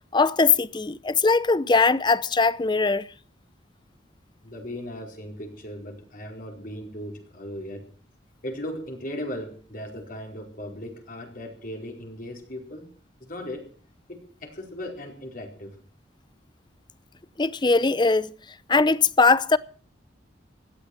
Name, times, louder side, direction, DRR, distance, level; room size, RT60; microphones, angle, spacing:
voice 1, 0.1-3.1 17.4-18.3 18.7-19.6, left 4 dB, 25° left, 0.6 m, -20 dB
voice 2, 4.4-7.8 8.4-12.8 13.2-13.7 14.1-15.7, left 1 dB, 50° left, 4.6 m, -37 dB
17.0 x 12.5 x 6.0 m
head